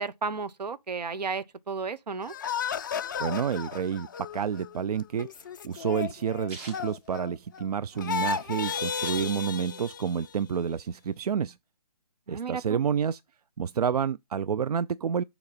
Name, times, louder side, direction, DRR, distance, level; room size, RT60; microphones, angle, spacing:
voice 1, 0.0-2.3 12.3-12.8, right 5 dB, 85° right, 0.8 m, -33 dB
sound 1, 2.3-7.7 8.0-10.5, left 7 dB, 30° left, 0.4 m, -34 dB
voice 2, 3.2-4.1 4.3-5.3 5.6-11.6 12.3-13.2 13.6-15.2, right 7 dB, 70° right, 0.4 m, -29 dB
sound 2, 4.8-7.9 8.2-8.3 8.5-9.8 10.2-11.3, right 2 dB, 25° right, 1.9 m, -48 dB
6.9 x 2.9 x 5.8 m
hypercardioid pair, 155°, 21 cm